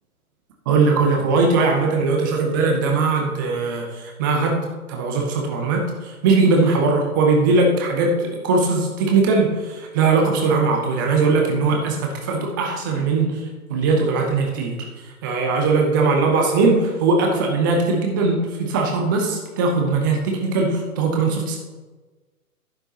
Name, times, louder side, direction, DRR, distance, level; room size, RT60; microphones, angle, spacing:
voice 1, 0.7-4.6 4.9-13.4 13.7-14.8 15.2-21.6, right 3 dB, 15° right, 1 dB, 0.7 m, -20 dB
11.5 x 8.8 x 2.9 m, 1.3 s
figure-of-eight pair, 135°, 45 cm